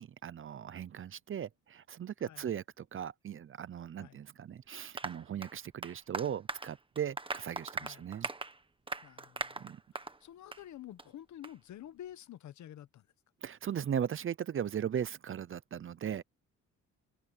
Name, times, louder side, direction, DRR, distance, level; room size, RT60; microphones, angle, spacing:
voice 1, 0.0-8.3 9.6-9.8 13.4-16.2, right 9 dB, 45° right, 0.7 m, -38 dB
Applause, 5.0-10.2 10.5-10.6 11.0-11.1 11.4-11.5, right 3 dB, 15° right, 1.5 m, -40 dB
voice 2, 7.8-8.1 9.0-9.7 9.9-13.1, left 12 dB, 70° left, 1.3 m, -49 dB
cardioid pair, 90°, 30 cm